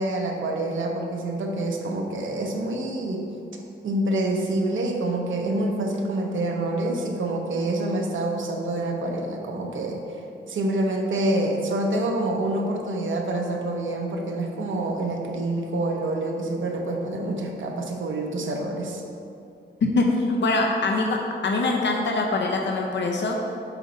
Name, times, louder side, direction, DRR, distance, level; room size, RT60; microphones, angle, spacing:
voice 1, 0.0-3.3 3.8-10.0 10.5-19.0, right 1 dB, 75° right, 1 dB, 0.9 m, -27 dB
voice 2, 19.8-23.4, left 2 dB, 65° left, 1 dB, 0.6 m, -23 dB
7.5 x 3.9 x 5.2 m, 2.5 s
wide cardioid pair, 170°, 20 cm